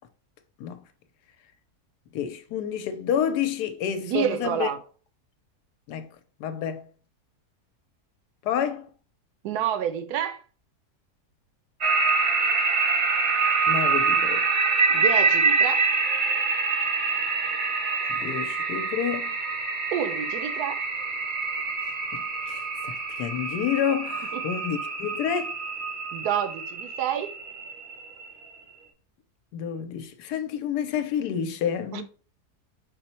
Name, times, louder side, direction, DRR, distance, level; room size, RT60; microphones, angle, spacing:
voice 1, 2.1-4.7 5.9-6.1 6.4-6.9 8.4-8.9 13.7-14.4 18.1-19.4 22.1-25.5 29.5-32.0, left 8 dB, 85° left, 1.1 m, -29 dB
voice 2, 4.0-4.8 9.4-10.4 14.9-15.8 19.9-20.8 24.3-24.4 26.1-27.3 31.9-32.0, right 9 dB, 80° right, 1.1 m, -28 dB
sound 1, 11.8-28.5, right 4 dB, 50° right, 0.6 m, -26 dB
5.2 x 2.1 x 4.1 m
omnidirectional pair, 1.7 m